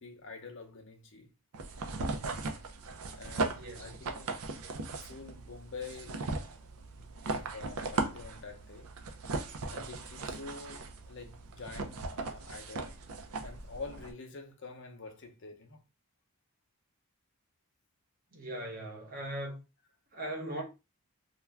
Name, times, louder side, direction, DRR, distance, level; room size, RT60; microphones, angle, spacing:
voice 1, 0.0-1.3 1.9-2.2 3.1-4.4 5.0-6.2 6.7-8.9 9.7-12.9 13.4-15.8, left 4 dB, 55° left, 0.6 m, -47 dB
sound 1, 1.5-14.1, right 3 dB, 80° right, 0.5 m, -38 dB
voice 2, 3.5-4.1 18.3-19.6 20.1-20.6, right 1 dB, 40° right, 0.9 m, -39 dB
2.4 x 2.2 x 3.2 m
head